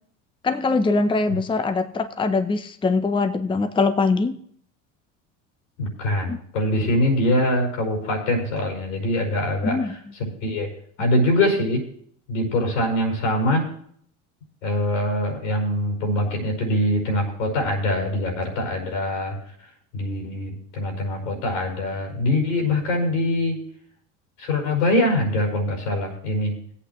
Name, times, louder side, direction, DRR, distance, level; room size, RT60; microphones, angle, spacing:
voice 1, 0.4-4.4 6.3-6.4 9.6-9.9, left 3 dB, 15° left, 9 dB, 0.7 m, -22 dB
voice 2, 5.8-10.7 11.0-11.8 12.3-13.7 14.6-19.4 19.9-23.6 24.4-26.5, left 1 dB, 90° left, 1 dB, 5.2 m, -23 dB
18.0 x 8.4 x 3.1 m, 0.62 s
supercardioid pair, 95°, 38 cm